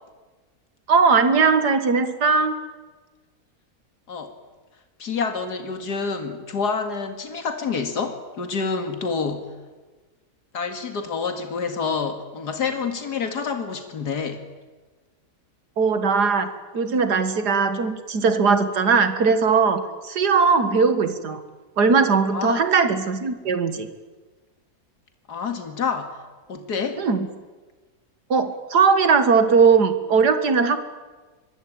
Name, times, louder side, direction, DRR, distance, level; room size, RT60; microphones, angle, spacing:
voice 1, 0.9-2.6 15.8-21.4 21.8-23.9 27.0-27.3 28.3-30.8, right 5 dB, 85° right, 10 dB, 2.4 m, -19 dB
voice 2, 5.0-9.5 10.5-14.4 22.3-22.6 25.3-26.2 26.5-27.0, left 5 dB, 85° left, 6 dB, 2.7 m, -28 dB
26.0 x 23.0 x 8.8 m, 1.3 s
omnidirectional pair, 1.7 m